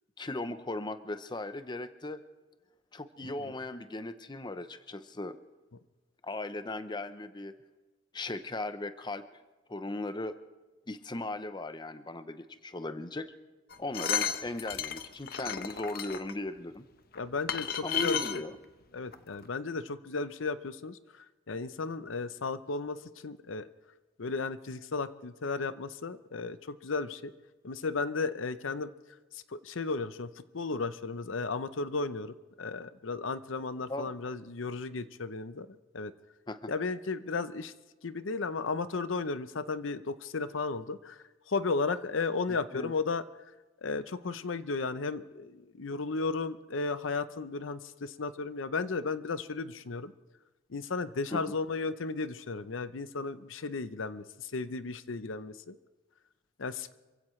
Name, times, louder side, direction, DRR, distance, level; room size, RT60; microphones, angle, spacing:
voice 1, 0.2-2.2 2.9-5.4 6.2-7.5 8.1-9.3 9.7-10.4 10.9-13.3 13.8-16.9 17.8-18.6 33.9-34.1 36.5-36.7 42.7-42.9 51.3-51.5, left 2 dB, 20° left, 11 dB, 0.7 m, -37 dB
sound 1, 13.7-16.3 17.1-17.2 17.5-18.4 19.1-19.2 19.4-19.5, left 8 dB, 50° left, 0.9 m, -33 dB
voice 2, 17.2-18.4 18.9-23.7 24.2-27.3 27.6-28.9 29.3-35.7 35.9-36.1 36.7-37.7 38.0-43.2 43.8-50.1 50.7-55.8 56.6-56.9, left 4 dB, 80° left, 13 dB, 0.7 m, -34 dB
26.5 x 16.0 x 3.2 m, 1.2 s
head